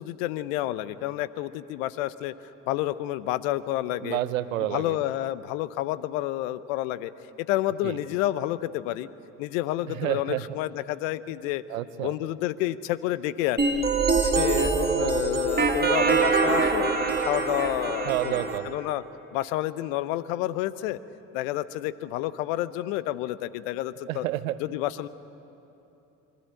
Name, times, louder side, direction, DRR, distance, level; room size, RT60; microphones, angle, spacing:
voice 1, 0.0-2.3 2.7-4.2 4.6-7.1 7.4-9.1 9.4-11.6 12.0-13.6 14.2-14.7 15.0-16.9 17.2-19.0 19.3-21.0 21.3-24.2 24.6-25.1, left 14 dB, 75° left, 16 dB, 0.8 m, -29 dB
voice 2, 4.0-5.0 7.8-8.0 9.9-10.5 11.7-12.1 14.5-15.4 18.0-18.7 24.1-24.6, right 14 dB, 90° right, 14 dB, 0.8 m, -30 dB
sound 1, 13.6-18.6, right 4 dB, 25° right, 2.2 m, -24 dB
25.0 x 13.0 x 8.9 m, 3.0 s
hypercardioid pair, 65°, 39 cm